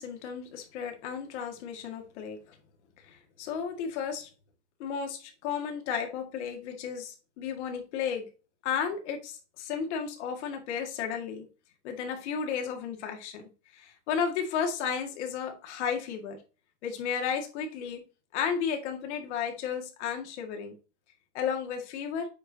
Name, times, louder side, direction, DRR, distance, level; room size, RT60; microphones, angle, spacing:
voice 1, 0.0-2.6 3.0-4.3 4.8-8.3 8.6-11.5 11.8-13.4 13.7-16.4 16.8-18.0 18.3-20.7 21.3-22.3, left 7 dB, 90° left, 3 dB, 2.0 m, -33 dB
8.3 x 4.5 x 2.8 m, 0.33 s
supercardioid pair, 160°, 33 cm